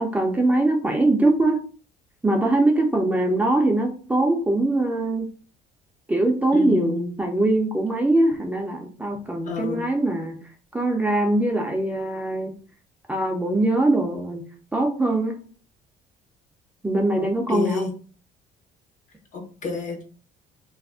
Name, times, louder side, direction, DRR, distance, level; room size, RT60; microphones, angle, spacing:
voice 1, 0.0-1.6 2.2-5.3 6.1-10.4 10.7-12.5 13.1-14.4 14.7-15.3 16.8-17.9, right 2 dB, 10° right, 0 dB, 0.4 m, -22 dB
voice 2, 6.5-7.1 9.4-9.8 17.5-17.9 19.3-20.0, left 4 dB, 50° left, 3 dB, 0.8 m, -29 dB
2.4 x 2.0 x 3.4 m, 0.40 s
cardioid pair, 110°, 17 cm